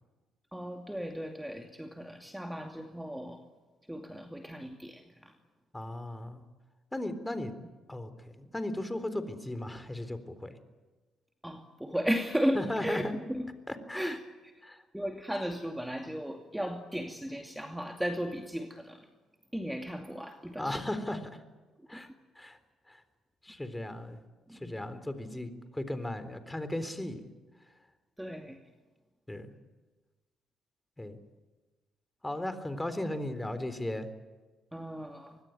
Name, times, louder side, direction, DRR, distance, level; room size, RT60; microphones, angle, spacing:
voice 1, 0.5-3.5 3.9-5.4 11.4-13.5 13.9-14.5 14.9-19.1 19.5-20.9 21.8-22.1 23.5-23.6 24.5-24.8 28.2-28.6 34.7-35.4, equal, 5° right, 4 dB, 2.5 m, -35 dB
voice 2, 5.7-6.4 6.9-7.5 7.9-10.6 12.5-13.1 13.7-14.2 14.6-14.8 20.6-21.4 21.9-22.1 22.4-22.6 22.9-23.0 23.4-24.2 24.5-27.2 29.3-29.5 31.0-31.2 32.2-34.1, left 1 dB, 10° left, 11 dB, 3.8 m, -36 dB
24.5 x 20.5 x 9.3 m, 1.3 s
hypercardioid pair, 50°, 0 cm